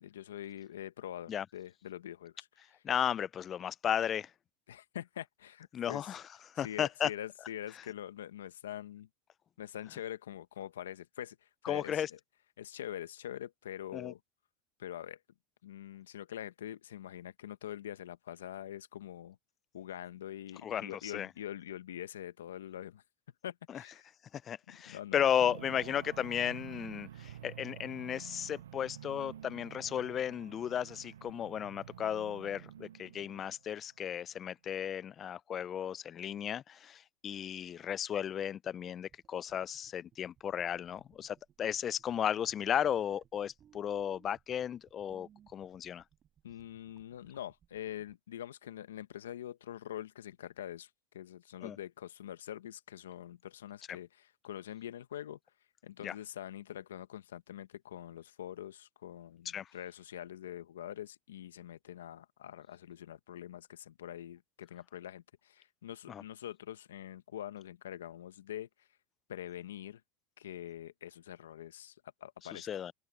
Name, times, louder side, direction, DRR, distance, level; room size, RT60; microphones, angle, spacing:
voice 1, 0.0-2.8 4.7-6.1 6.6-9.1 9.6-12.2 12.6-14.2 14.8-15.2 15.6-19.4 19.7-23.0 23.4-24.1 24.7-25.3 46.4-55.4 55.8-68.9 69.3-70.0 70.4-72.7, left 11 dB, 85° left, 1.3 m, -44 dB
voice 2, 2.8-4.3 5.7-6.2 6.5-7.1 11.6-12.1 13.9-14.1 20.6-21.3 24.3-46.0 51.6-51.8 56.0-56.1 59.5-59.7 66.1-66.2 72.5-72.9, left 9 dB, 35° left, 0.5 m, -35 dB
sound 1, 25.4-33.6, right 11 dB, 85° right, 0.3 m, -49 dB
sound 2, 39.1-48.2, right 9 dB, 40° right, 4.1 m, -65 dB
hypercardioid pair, 90°, 0 cm